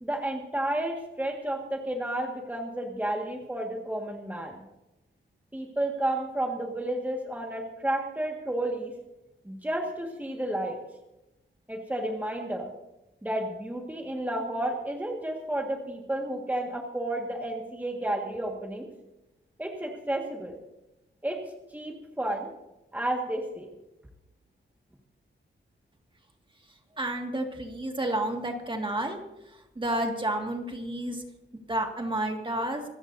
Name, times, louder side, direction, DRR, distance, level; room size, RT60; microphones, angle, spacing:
voice 1, 0.0-4.6 5.5-8.9 9.4-10.8 11.7-12.7 13.2-18.9 19.6-20.6 21.2-21.4 21.7-22.5 22.9-23.7, right 1 dB, 10° right, 1 dB, 1.7 m, -31 dB
voice 2, 27.0-29.2 29.8-31.2 31.7-32.9, right 1 dB, 25° right, 3 dB, 2.0 m, -30 dB
25.5 x 15.0 x 2.7 m, 0.95 s
wide cardioid pair, 155°, 20 cm